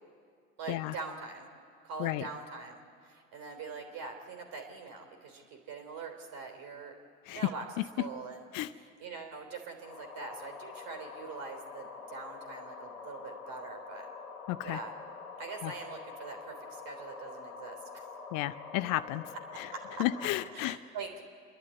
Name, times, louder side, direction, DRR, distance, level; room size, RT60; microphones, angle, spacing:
voice 1, 0.6-1.5 1.8-7.0 7.3-7.7 8.0-14.1 14.6-14.9 15.4-18.1 19.7-20.0 20.5-21.2, right 4 dB, 50° right, 5 dB, 3.4 m, -43 dB
sound 1, 9.8-20.5, left 4 dB, 80° left, 1.8 m, -46 dB
voice 2, 14.5-14.8 15.6-15.7 18.3-19.2 19.6-19.7 20.0-20.8, left 16 dB, 50° left, 14 dB, 0.6 m, -32 dB
28.0 x 11.0 x 9.5 m, 2.3 s
figure-of-eight pair, 70°, 43 cm